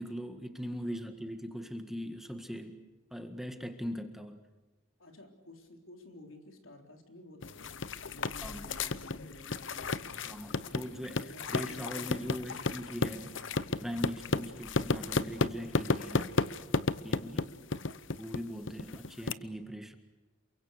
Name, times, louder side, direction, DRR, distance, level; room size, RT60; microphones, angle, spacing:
voice 1, 0.0-2.8 3.1-4.4 8.4-8.6 10.3-11.2 11.5-13.3 13.8-16.3 17.0-17.4 18.2-20.0, equal, ahead, 6 dB, 1.8 m, -40 dB
voice 2, 0.8-1.1 5.0-10.3 11.1-12.7 14.3-14.9 17.2-18.0, left 1 dB, 80° left, 4 dB, 3.8 m, -53 dB
sound 1, 7.4-19.3, left 3 dB, 65° left, 0.9 m, -33 dB
28.5 x 24.0 x 6.6 m, 1.2 s
head